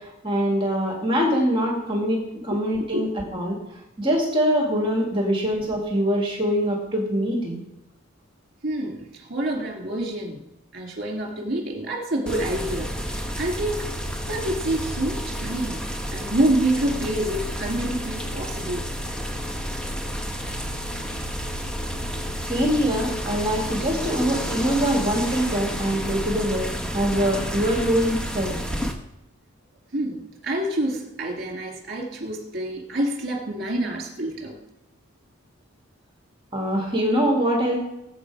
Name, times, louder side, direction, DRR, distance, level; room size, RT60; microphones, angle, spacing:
voice 1, 0.0-3.6 4.0-7.6 22.4-28.6 36.5-37.8, equal, 25° right, -1 dB, 2.3 m, -23 dB
voice 2, 2.5-3.1 8.6-10.4 10.7-12.9 13.4-13.9 14.3-15.8 16.1-18.9 20.5-20.6 21.4-21.5 29.9-34.6, right 1 dB, 45° right, 0 dB, 2.6 m, -27 dB
sound 1, 12.3-28.9, equal, 5° left, 1.2 m, -30 dB
20.5 x 8.0 x 4.9 m, 0.93 s
head